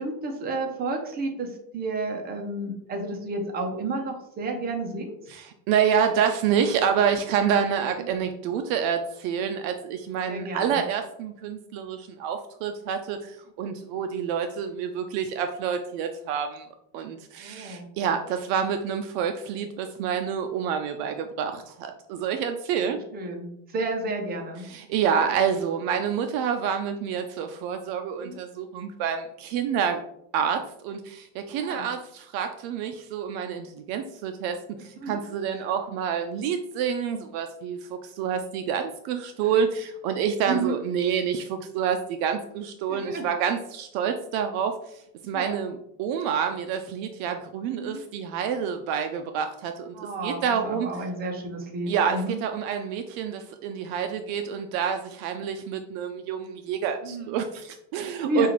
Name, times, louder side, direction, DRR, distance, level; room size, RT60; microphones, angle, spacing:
voice 1, 0.0-5.1 8.0-8.1 10.1-10.8 17.4-17.9 22.9-24.7 28.2-28.4 31.6-31.9 34.8-35.2 35.5-35.7 39.4-39.5 40.4-40.8 42.9-43.3 45.3-45.6 47.7-48.0 49.9-52.4 57.0-57.4 58.2-58.5, right 2 dB, 25° right, 2 dB, 0.7 m, -31 dB
voice 2, 5.3-16.7 16.9-23.0 24.7-30.0 30.3-49.9 50.2-50.9 51.9-58.5, right 7 dB, 60° right, 6 dB, 0.5 m, -28 dB
5.4 x 2.5 x 3.0 m, 0.76 s
cardioid pair, 140°, 41 cm